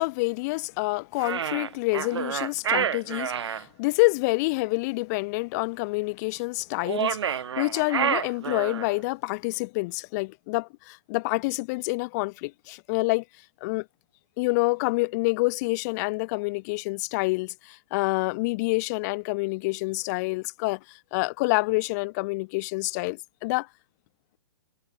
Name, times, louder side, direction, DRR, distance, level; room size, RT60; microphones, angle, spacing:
voice 1, 0.0-13.2 13.6-13.9 14.4-23.7, left 25 dB, 40° left, 3.1 m, -27 dB
sound 1, 1.2-3.6 6.8-9.0, right 8 dB, 80° right, 1.1 m, -28 dB
hypercardioid pair, 145°, 14 cm